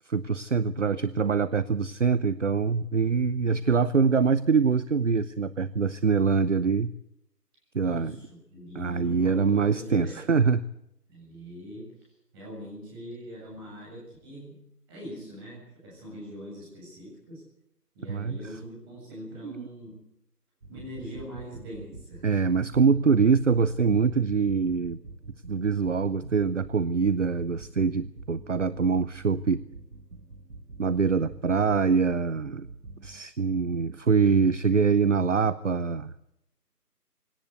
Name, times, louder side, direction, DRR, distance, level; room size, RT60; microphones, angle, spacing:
voice 1, 0.1-6.9 7.7-8.1 8.8-10.6 18.1-18.4 19.4-19.5 22.2-25.0 25.5-29.6 30.8-32.7 33.0-36.1, right 5 dB, 50° right, 17 dB, 0.7 m, -24 dB
voice 2, 7.8-10.2 11.1-11.9 12.3-14.6 14.9-17.4 17.9-20.0 20.7-22.3, equal, 15° right, -3 dB, 7.6 m, -42 dB
sound 1, 20.6-33.2, right 3 dB, 70° right, 1.8 m, -46 dB
20.0 x 18.0 x 8.2 m, 0.81 s
figure-of-eight pair, 155°, 48 cm